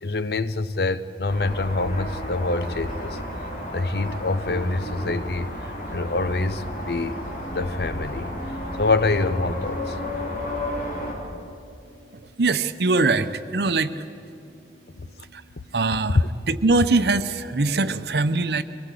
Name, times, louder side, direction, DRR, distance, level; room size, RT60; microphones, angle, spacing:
voice 1, 0.0-3.2 3.7-7.2 7.5-8.3 8.7-10.0 15.0-15.1 16.1-16.3, left 3 dB, 65° left, 0.7 m, -25 dB
sound 1, 1.3-11.1, left 1 dB, 50° left, 3.6 m, -32 dB
voice 2, 12.4-14.0 15.3-15.4 15.7-16.2 16.5-18.6, right 3 dB, 70° right, 0.8 m, -22 dB
24.0 x 17.5 x 8.4 m
head